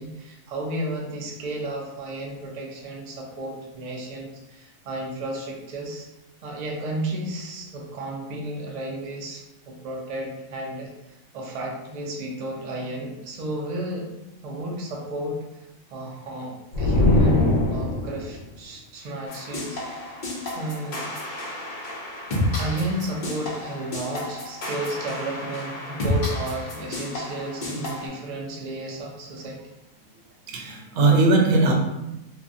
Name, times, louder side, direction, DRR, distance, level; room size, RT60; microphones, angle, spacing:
voice 1, 0.0-6.1 6.4-10.9 11.3-14.1 14.4-20.1 20.6-21.1 22.6-29.6, right 1 dB, 90° right, -1 dB, 0.3 m, -32 dB
sound 1, 16.7-18.4, left 2 dB, 85° left, 1.0 m, -21 dB
sound 2, 19.3-28.1, left 1 dB, 60° left, 0.5 m, -31 dB
voice 2, 30.5-31.7, right 3 dB, 70° right, 1 dB, 0.9 m, -19 dB
2.7 x 2.2 x 2.5 m, 0.95 s
omnidirectional pair, 1.4 m